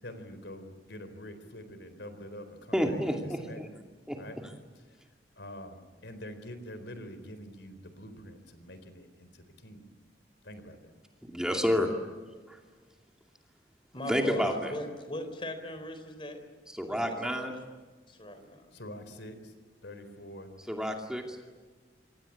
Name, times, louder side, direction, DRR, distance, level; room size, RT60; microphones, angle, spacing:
voice 1, 0.0-3.6 4.1-4.4 4.8-5.0 5.4-9.8 10.4-10.9 18.7-19.5 19.8-20.5, left 1 dB, 75° left, 10 dB, 4.1 m, -46 dB
voice 2, 2.7-3.7 4.1-4.2 11.3-11.9 14.1-14.7 16.8-17.5 20.7-21.2, equal, 5° right, 2 dB, 2.6 m, -29 dB
voice 3, 13.9-16.4 16.9-17.5 18.1-18.7, left 1 dB, 30° left, 8 dB, 4.1 m, -39 dB
27.0 x 25.5 x 8.6 m, 1.4 s
head